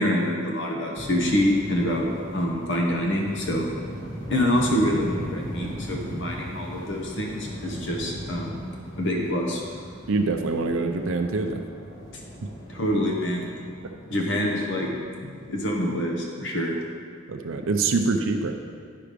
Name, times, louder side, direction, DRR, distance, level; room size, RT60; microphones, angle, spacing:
voice 1, 0.0-3.7 4.3-8.6 9.0-9.6 12.7-13.5 14.1-16.7, equal, 60° left, -1 dB, 1.1 m, -26 dB
sound 1, 0.9-15.9, equal, 20° left, 1.6 m, -38 dB
voice 2, 10.1-11.6 17.3-18.5, right 3 dB, 65° right, 5 dB, 0.5 m, -25 dB
9.5 x 5.9 x 5.1 m, 2.1 s
head